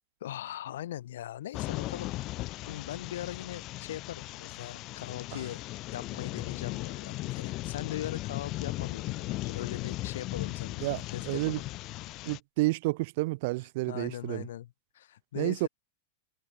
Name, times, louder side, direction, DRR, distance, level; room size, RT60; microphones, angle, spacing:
voice 1, 0.2-2.1 2.6-5.6 5.9-11.7 13.9-15.7, left 12 dB, 70° left, 4.4 m, -40 dB
sound 1, 1.5-12.4, left 18 dB, 25° left, 0.8 m, -37 dB
voice 2, 11.3-11.6 12.3-14.4 15.4-15.7, right 22 dB, 40° right, 0.5 m, -30 dB
supercardioid pair, 175°, 0 cm